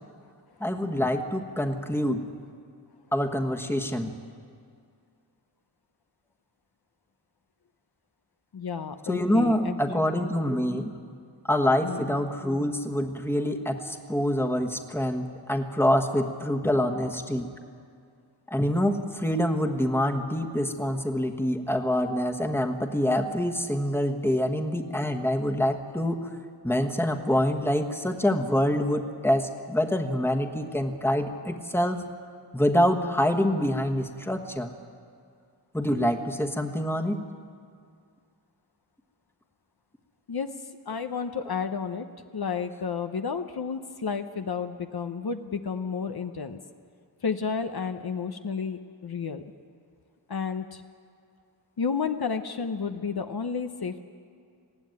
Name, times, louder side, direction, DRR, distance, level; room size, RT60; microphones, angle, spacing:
voice 1, 0.6-2.3 3.1-4.1 9.0-10.9 11.5-17.5 18.5-26.3 26.6-32.0 32.5-34.7 35.7-37.2, left 1 dB, 5° left, 3 dB, 1.3 m, -26 dB
voice 2, 8.5-10.2 11.8-12.1 40.3-40.5 40.9-42.1 42.3-46.6 47.2-49.4 50.3-50.8 51.8-54.0, left 6 dB, 60° left, 7 dB, 0.8 m, -31 dB
19.5 x 14.5 x 9.5 m, 2.3 s
wide cardioid pair, 80°, 42 cm